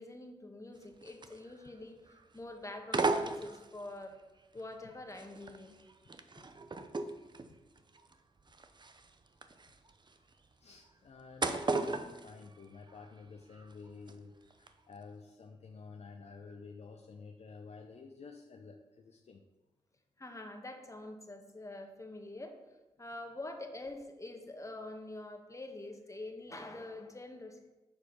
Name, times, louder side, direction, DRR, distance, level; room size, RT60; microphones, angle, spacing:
voice 1, 0.0-4.2 4.5-5.8 20.2-22.6 23.0-27.6, left 2 dB, 25° left, 4 dB, 1.4 m, -46 dB
sound 1, 0.7-1.8 2.0-2.4 2.8-4.0 4.6-13.2 13.5-14.1 14.5-14.7, right 3 dB, 35° right, 0.7 m, -37 dB
voice 2, 10.3-19.4, left 4 dB, 50° left, 3 dB, 0.7 m, -51 dB
6.7 x 4.7 x 5.8 m, 1.1 s
supercardioid pair, 40°, 14 cm